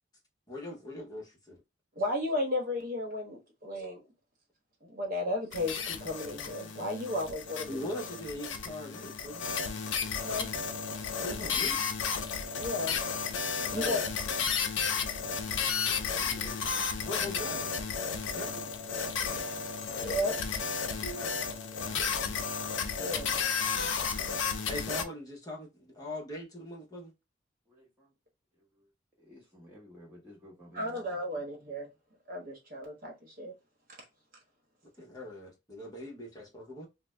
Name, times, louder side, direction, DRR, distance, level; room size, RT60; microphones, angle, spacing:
voice 1, 0.5-1.6 7.7-9.4 11.2-11.8 13.6-14.1 17.0-17.7 18.3-18.7 21.0-21.3 21.8-22.2 24.7-27.1 35.0-36.9, left 1 dB, 20° left, 0.9 m, -41 dB
voice 2, 1.9-4.0 4.8-7.7 10.2-10.5 12.6-13.0 13.7-14.0 20.0-20.3 23.0-23.5 30.7-31.9 32.3-33.5, left 1 dB, 45° right, 1.0 m, -34 dB
sound 1, 5.5-25.0, left 6 dB, 75° left, 0.5 m, -33 dB
voice 3, 15.8-17.1 27.7-28.1 28.5-28.9 29.2-31.1, equal, 10° right, 1.2 m, -54 dB
2.5 x 2.1 x 3.1 m
head